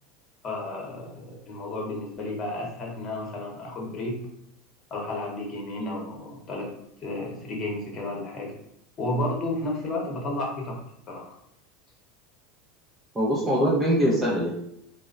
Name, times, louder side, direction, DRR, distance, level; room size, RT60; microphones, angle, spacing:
voice 1, 0.4-4.1 4.9-6.6 7.0-8.5 9.0-10.8 11.1-11.4, left 2 dB, 40° left, -1 dB, 1.0 m, -32 dB
voice 2, 13.1-14.5, equal, 15° right, -7 dB, 0.6 m, -23 dB
2.9 x 2.0 x 2.4 m, 0.75 s
supercardioid pair, 105°, 0 cm